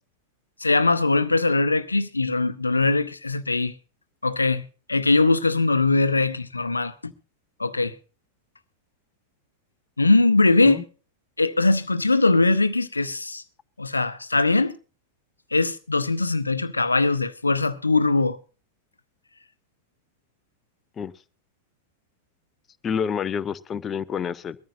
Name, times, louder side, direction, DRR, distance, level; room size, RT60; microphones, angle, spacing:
voice 1, 0.6-3.7 4.2-4.6 4.9-7.1 7.6-7.9 10.0-10.8 11.4-13.4 13.8-14.7 15.5-18.4, left 3 dB, 80° left, 0.8 m, -21 dB
voice 2, 22.8-24.6, left 7 dB, 25° left, 0.7 m, -28 dB
22.0 x 14.0 x 2.6 m
figure-of-eight pair, 90°, 0 cm